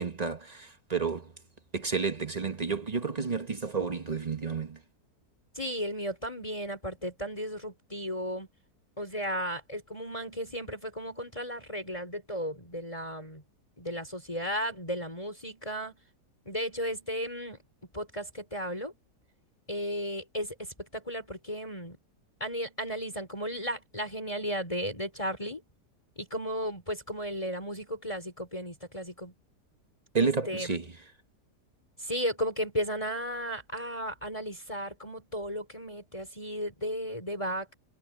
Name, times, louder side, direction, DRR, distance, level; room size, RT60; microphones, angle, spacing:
voice 1, 0.0-1.3 1.7-4.8 30.1-30.9, right 5 dB, 30° right, 1.0 m, -31 dB
voice 2, 5.5-8.5 9.0-13.4 13.8-16.0 16.4-17.6 17.9-18.9 19.7-22.0 22.4-25.6 26.2-29.3 30.2-30.8 32.0-37.7, equal, 20° left, 5.0 m, -35 dB
omnidirectional pair, 1.8 m